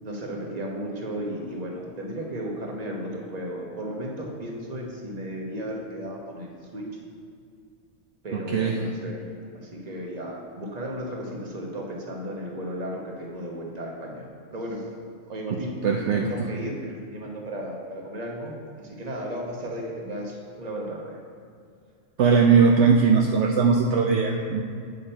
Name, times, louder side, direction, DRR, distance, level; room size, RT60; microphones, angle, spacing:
voice 1, 0.0-6.9 8.2-9.2 9.5-14.8 15.3-15.7 16.1-21.2, equal, 35° right, -1 dB, 1.2 m, -34 dB
voice 2, 8.3-8.8 15.5-15.6 15.8-16.5 22.2-24.6, right 5 dB, 70° right, 2 dB, 0.8 m, -20 dB
8.6 x 6.6 x 4.4 m, 2.3 s
omnidirectional pair, 1.3 m